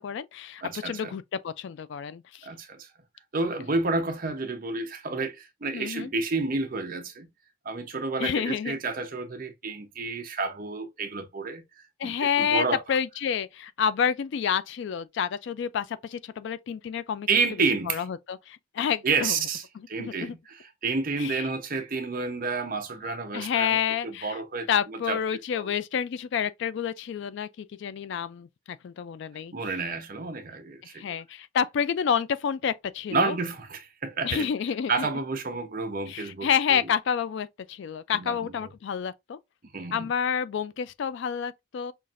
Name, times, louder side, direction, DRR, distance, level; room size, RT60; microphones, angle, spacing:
voice 1, 0.0-2.5 5.7-6.1 8.2-8.8 12.0-17.3 17.9-19.4 19.8-20.3 21.2-21.4 23.3-24.4 24.7-29.5 30.9-33.4 34.2-35.1 36.1-39.4 39.9-41.9, left 7 dB, 60° left, 0.3 m, -29 dB
voice 2, 0.6-1.1 2.4-2.9 3.3-7.3 7.6-12.8 17.3-18.0 19.0-25.2 25.5-25.7 29.5-31.1 33.1-34.5 34.9-36.8 38.1-38.5 39.7-40.1, right 4 dB, 40° right, 0.7 m, -30 dB
5.6 x 2.5 x 2.4 m
head